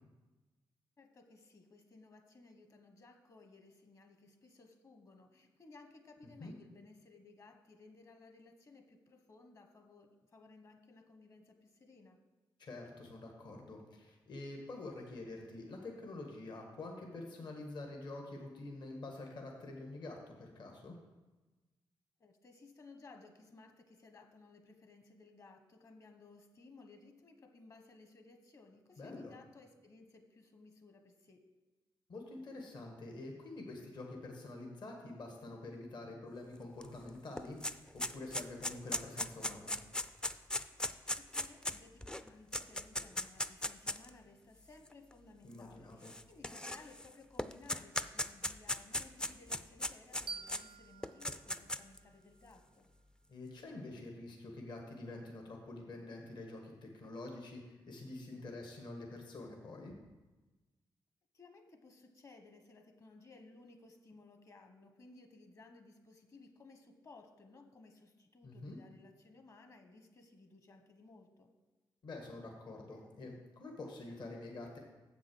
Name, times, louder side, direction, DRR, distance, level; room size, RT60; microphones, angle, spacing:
voice 1, 1.0-12.2 22.2-31.5 41.1-52.9 61.3-71.5, left 3 dB, 40° left, 6 dB, 1.2 m, -59 dB
voice 2, 6.2-6.5 12.6-21.0 29.0-29.3 32.1-39.7 45.4-46.1 53.3-60.0 68.4-68.8 72.0-74.8, left 2 dB, 60° left, 1 dB, 1.5 m, -47 dB
sound 1, 36.8-36.9 37.2-44.1 44.9-45.0 46.0-47.1 47.4-50.6 51.0-52.0, left 1 dB, 10° left, 0.4 m, -37 dB
sound 2, 50.3-53.1, right 4 dB, 75° right, 0.4 m, -50 dB
7.6 x 6.1 x 6.2 m, 1.2 s
cardioid pair, 70°, 8 cm